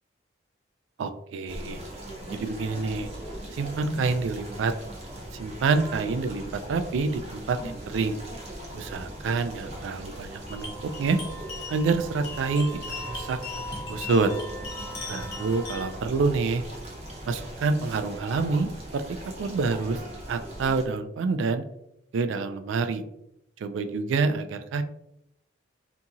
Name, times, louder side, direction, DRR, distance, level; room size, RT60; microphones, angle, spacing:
voice 1, 1.0-1.8 2.3-3.1 3.5-4.7 5.3-6.4 6.7-8.2 8.7-11.2 11.7-12.8 13.1-13.4 13.9-14.3 15.1-16.6 17.3-19.0 19.4-20.0 20.3-21.6 22.1-23.0 23.6-24.8, right 4 dB, 75° right, 9 dB, 0.3 m, -27 dB
sound 1, 1.5-20.9, right 1 dB, 35° right, 0.6 m, -40 dB
sound 2, 10.5-15.9, left 2 dB, 55° left, 0.9 m, -38 dB
2.8 x 2.7 x 2.4 m, 0.79 s
head